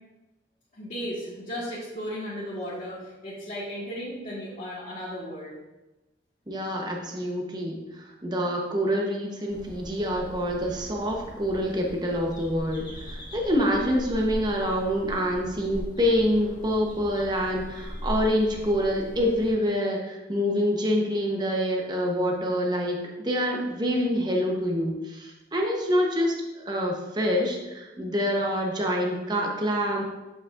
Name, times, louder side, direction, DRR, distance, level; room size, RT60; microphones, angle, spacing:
voice 1, 0.8-5.6, equal, 45° left, -9 dB, 1.6 m, -35 dB
voice 2, 6.5-7.8 8.2-12.9 13.3-30.0, equal, 25° right, 0 dB, 0.9 m, -26 dB
sound 1, 9.5-19.5, equal, 25° left, 1.7 m, -40 dB
8.2 x 5.4 x 2.5 m, 1.0 s
head